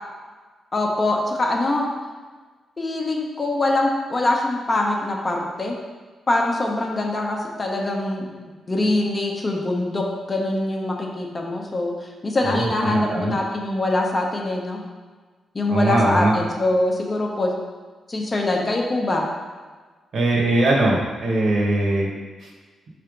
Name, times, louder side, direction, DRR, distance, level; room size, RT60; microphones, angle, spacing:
voice 1, 0.7-1.9 2.8-5.7 6.3-8.3 8.7-14.8 15.5-17.5 18.1-19.3, left 2 dB, 25° left, 0 dB, 0.8 m, -23 dB
voice 2, 12.4-13.3 15.7-16.4 20.1-22.1 22.4-22.5, right 2 dB, 60° right, -1 dB, 1.3 m, -21 dB
5.6 x 3.4 x 5.1 m, 1.4 s
wide cardioid pair, 140°, 0 cm